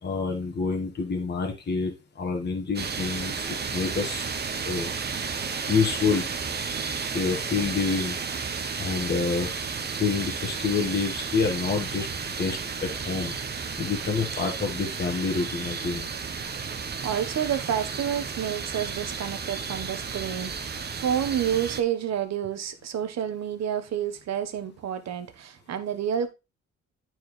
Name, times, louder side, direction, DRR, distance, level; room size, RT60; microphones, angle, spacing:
voice 1, 0.0-3.4 3.7-4.2 4.6-4.9 5.7-6.2 7.1-8.2 8.8-9.6 10.0-12.1 12.4-13.3 13.8-16.1, left 5 dB, 35° left, 1.4 m, -27 dB
sound 1, 2.8-21.8, right 5 dB, 35° right, 0.9 m, -33 dB
voice 2, 17.0-26.3, right 9 dB, 60° right, 1.1 m, -29 dB
8.7 x 4.6 x 3.1 m
cardioid pair, 90°, 30 cm